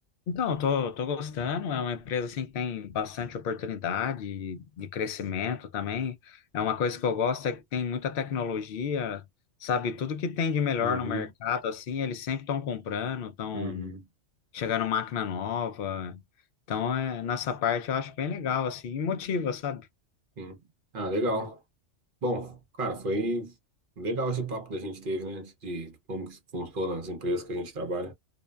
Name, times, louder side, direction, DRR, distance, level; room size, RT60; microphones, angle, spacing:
voice 1, 0.3-9.2 9.6-14.0 14.5-16.2 16.7-19.9, left 7 dB, 60° left, 0.6 m, -30 dB
voice 2, 10.8-11.3 13.5-14.1 20.4-20.6 20.9-21.6 22.2-23.5 24.0-28.1, right 1 dB, 50° right, 0.9 m, -32 dB
2.5 x 2.1 x 2.2 m
omnidirectional pair, 1.2 m